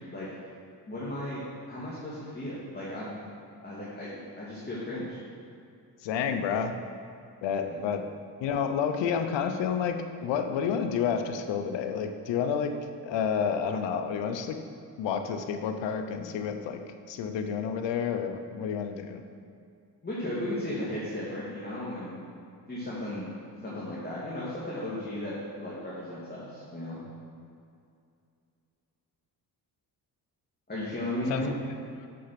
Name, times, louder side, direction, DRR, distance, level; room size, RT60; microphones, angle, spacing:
voice 1, 0.9-3.1 3.6-5.2 7.7-7.8 20.0-22.2 22.7-23.3 23.6-27.0 30.7-31.5, left 1 dB, 25° left, -8 dB, 2.2 m, -35 dB
voice 2, 6.0-6.7 7.4-8.0 8.4-12.7 13.0-14.6 15.0-16.8 17.1-19.2 31.3-31.5 32.0-32.1, left 7 dB, 90° left, 7 dB, 0.7 m, -30 dB
6.8 x 6.5 x 5.8 m, 2.4 s
cardioid pair, 70°, 42 cm